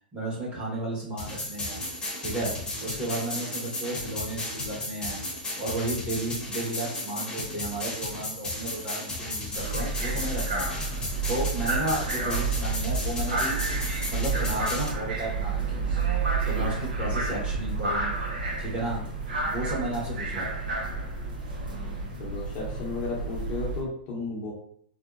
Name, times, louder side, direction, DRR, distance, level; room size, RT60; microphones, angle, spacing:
voice 1, 0.1-1.8 2.2-2.5 2.8-5.2 5.6-10.8 11.3-16.0 16.4-18.2 18.6-19.0 19.4-20.6, right 1 dB, 25° right, -6 dB, 1.2 m, -33 dB
sound 1, 1.2-14.9, left 1 dB, 15° left, 1.0 m, -34 dB
sound 2, 9.5-23.8, right 3 dB, 70° right, 0.9 m, -30 dB
voice 2, 22.2-24.5, left 3 dB, 40° left, -3 dB, 0.9 m, -33 dB
2.7 x 2.1 x 2.5 m, 0.63 s
hypercardioid pair, 120°, 5 cm